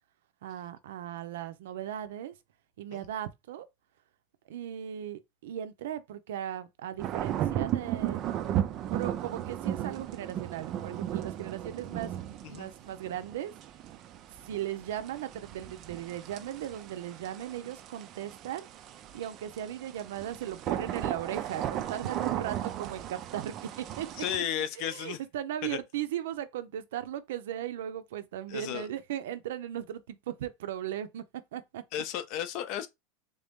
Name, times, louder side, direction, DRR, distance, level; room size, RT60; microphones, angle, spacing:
voice 1, 0.4-2.4 2.8-3.7 4.5-8.2 8.9-13.5 14.3-18.7 19.1-24.1 24.8-31.2 31.5-31.8, right 11 dB, 80° right, 0.6 m, -37 dB
sound 1, 7.0-24.4, right 11 dB, 30° right, 0.3 m, -36 dB
voice 2, 24.2-25.2 25.6-25.8 28.5-28.9 31.9-32.9, left 10 dB, 40° left, 0.5 m, -34 dB
3.6 x 2.7 x 3.5 m
supercardioid pair, 180°, 0 cm